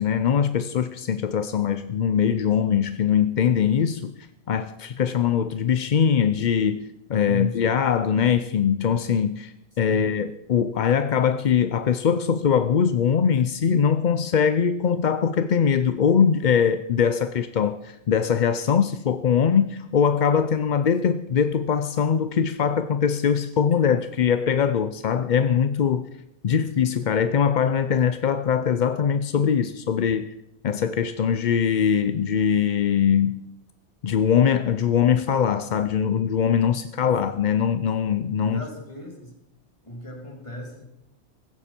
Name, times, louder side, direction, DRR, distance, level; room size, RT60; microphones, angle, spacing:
voice 1, 0.0-26.1 26.4-30.3 30.6-33.5 34.0-38.6, left 7 dB, 50° left, 11 dB, 0.5 m, -22 dB
voice 2, 7.2-7.8 9.9-10.2 26.5-26.7 38.4-39.3 39.8-40.8, equal, 25° left, 1 dB, 3.2 m, -36 dB
17.0 x 14.5 x 4.4 m, 0.86 s
omnidirectional pair, 1.3 m